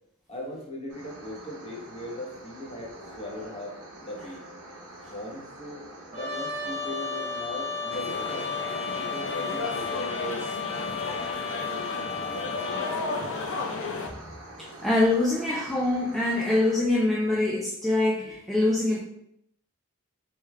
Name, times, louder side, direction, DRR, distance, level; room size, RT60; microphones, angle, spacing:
voice 1, 0.3-3.7 4.0-4.4 5.1-8.5 9.0-10.5 11.5-12.4, left 1 dB, 25° left, -3 dB, 1.0 m, -39 dB
sound 1, 0.9-16.8, right 1 dB, 85° right, 1.1 m, -46 dB
Trumpet, 6.1-13.0, left 5 dB, 30° right, 0.9 m, -34 dB
sound 2, 7.9-14.1, left 3 dB, 60° left, 0.5 m, -33 dB
voice 2, 14.6-19.0, left 2 dB, ahead, -5 dB, 0.4 m, -24 dB
3.4 x 3.2 x 3.2 m, 0.74 s
head